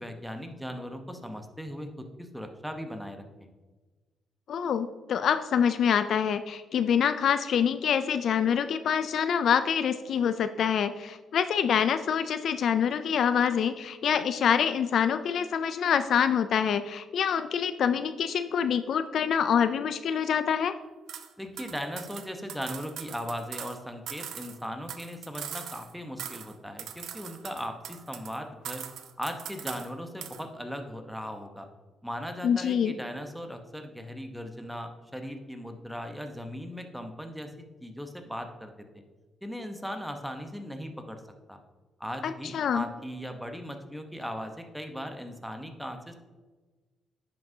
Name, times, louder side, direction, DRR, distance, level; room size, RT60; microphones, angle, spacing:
voice 1, 0.0-3.5 21.4-28.8 29.2-31.7 32.0-37.5 37.8-39.0 39.4-41.2 41.5-41.6 42.0-46.1, equal, ahead, 5 dB, 0.9 m, -38 dB
voice 2, 4.5-20.8 32.4-32.9 42.2-42.8, left 8 dB, 65° left, 11 dB, 0.3 m, -26 dB
sound 1, 21.1-21.3 21.6-23.8 24.1-25.9 26.2-26.5 26.8-28.4 28.6-29.9 30.2-30.4, right 9 dB, 75° right, 0.6 m, -41 dB
10.0 x 6.0 x 2.7 m, 1.3 s
cardioid pair, 90°, 0 cm